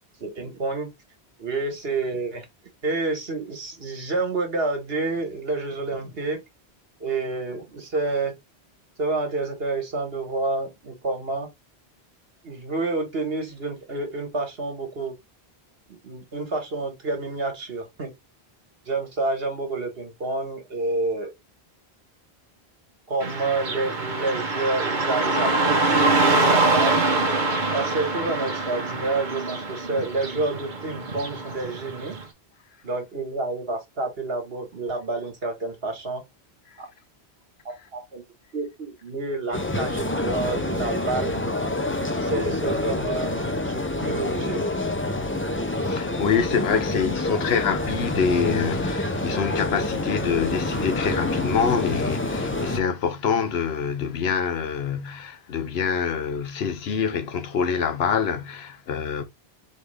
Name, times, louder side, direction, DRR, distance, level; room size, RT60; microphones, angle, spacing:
voice 1, 0.2-0.9 1.4-2.4 2.8-6.4 7.0-8.3 9.0-11.5 12.4-15.1 15.9-18.1 18.8-21.3 23.1-27.0 27.7-32.2 32.8-36.2 36.8-36.9 37.6-38.2 38.5-41.4 42.2-44.7, right 3 dB, 65° right, 1.7 m, -29 dB
Car passing by / Traffic noise roadway noise, 23.2-32.2, right 3 dB, 50° right, 1.1 m, -24 dB
sound 1, 39.5-52.8, left 2 dB, 15° left, 0.5 m, -27 dB
voice 2, 45.8-59.2, left 6 dB, 70° left, 1.0 m, -26 dB
4.2 x 3.4 x 3.2 m
omnidirectional pair, 1.1 m